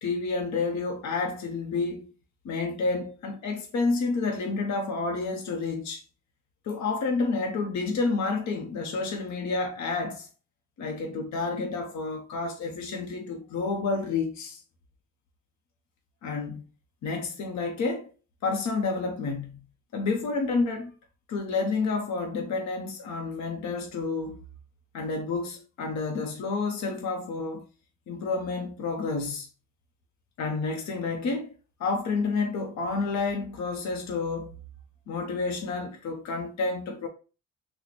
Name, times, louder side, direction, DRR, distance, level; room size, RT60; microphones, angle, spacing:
voice 1, 0.0-2.1 2.4-6.0 6.6-10.3 10.8-14.6 16.2-16.6 17.0-18.1 18.4-19.6 19.9-20.9 21.3-24.4 24.9-27.7 28.1-29.5 30.4-31.5 31.8-34.5 35.1-37.1, left 4 dB, 65° left, 0.8 m, -29 dB
2.9 x 2.2 x 4.0 m
cardioid pair, 90°, 30 cm